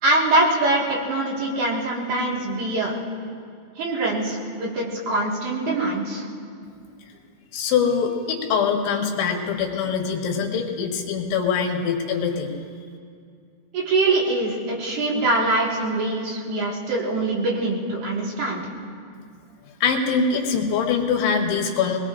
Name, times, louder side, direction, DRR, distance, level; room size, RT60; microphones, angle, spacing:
voice 1, 0.0-2.9 3.8-6.2 13.7-18.6, right 2 dB, 55° right, -3 dB, 2.6 m, -23 dB
voice 2, 7.5-12.6 19.8-22.0, left 6 dB, 75° left, 1 dB, 3.5 m, -23 dB
26.0 x 19.5 x 2.5 m, 2.3 s
omnidirectional pair, 5.5 m